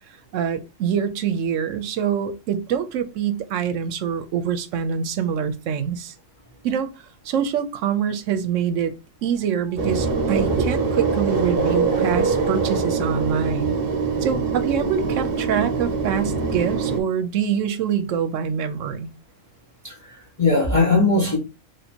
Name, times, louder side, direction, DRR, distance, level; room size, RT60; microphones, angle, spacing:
voice 1, 0.3-6.1 6.6-6.9 7.2-8.9 9.2-13.8 14.2-19.1, right 8 dB, 80° right, 1.0 m, -25 dB
sound 1, 9.8-17.0, right 4 dB, 50° right, 1.0 m, -23 dB
voice 2, 19.8-21.4, left 3 dB, 25° left, 1.2 m, -20 dB
3.2 x 2.8 x 4.3 m
omnidirectional pair, 1.3 m